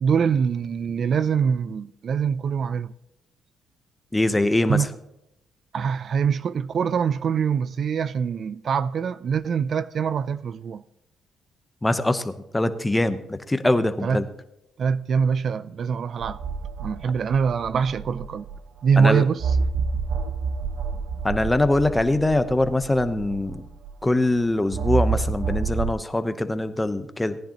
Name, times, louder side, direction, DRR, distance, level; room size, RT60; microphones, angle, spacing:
voice 1, 0.0-2.9 4.7-4.9 5.7-10.8 14.0-14.2 14.8-16.4 16.8-18.5 18.8-19.6, right 6 dB, 55° right, 0.3 m, -24 dB
voice 2, 4.1-4.8 11.8-14.3 19.0-19.2 21.2-23.6 24.0-27.4, left 1 dB, 10° left, 0.8 m, -23 dB
sound 1, 16.2-18.8 19.4-24.1 24.7-25.9, right 4 dB, 75° right, 0.8 m, -28 dB
18.0 x 10.0 x 2.9 m
cardioid pair, 90°, 0 cm